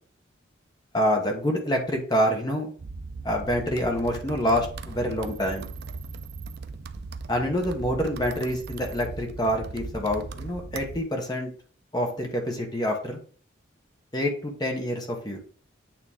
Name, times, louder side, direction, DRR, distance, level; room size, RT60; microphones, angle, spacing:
voice 1, 0.9-2.7 3.2-5.7 7.3-11.5 11.9-13.2 14.1-15.4, equal, 20° left, 2 dB, 1.3 m, -27 dB
sound 1, 2.8-11.0, right 4 dB, 55° right, 0.4 m, -38 dB
8.8 x 3.2 x 3.6 m, 0.42 s
head